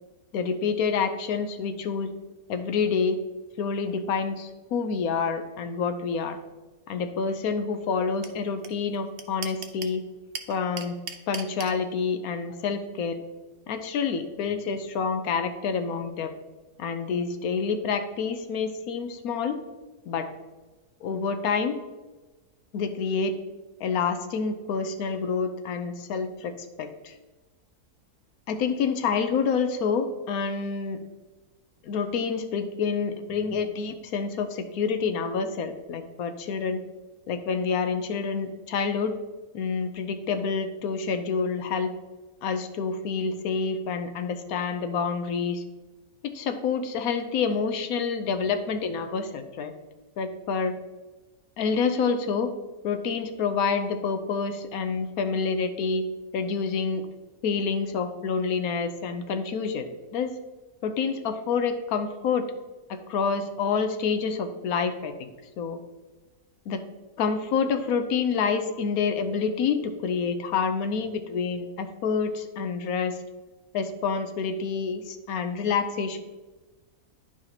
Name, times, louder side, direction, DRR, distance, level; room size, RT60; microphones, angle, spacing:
voice 1, 0.3-2.1 2.5-3.2 3.6-6.4 6.9-10.0 10.5-11.0 11.3-13.2 13.7-16.3 16.8-19.6 20.1-20.3 21.0-21.8 22.7-23.4 23.8-27.1 28.5-31.0 31.8-36.8 37.3-39.2 39.5-41.9 42.4-45.6 46.2-49.7 50.2-50.8 51.6-52.5 52.8-56.0 56.3-57.0 57.4-60.4 60.8-62.5 62.9-65.3 65.6-65.8 66.7-66.8 67.2-73.2 73.7-76.2, left 5 dB, 75° left, 8 dB, 1.1 m, -28 dB
sound 1, 8.2-8.3 8.6-8.7 8.9-10.0 10.3-11.7, right 7 dB, 60° right, 0.6 m, -35 dB
10.5 x 4.9 x 2.8 m, 1.2 s
omnidirectional pair, 1.6 m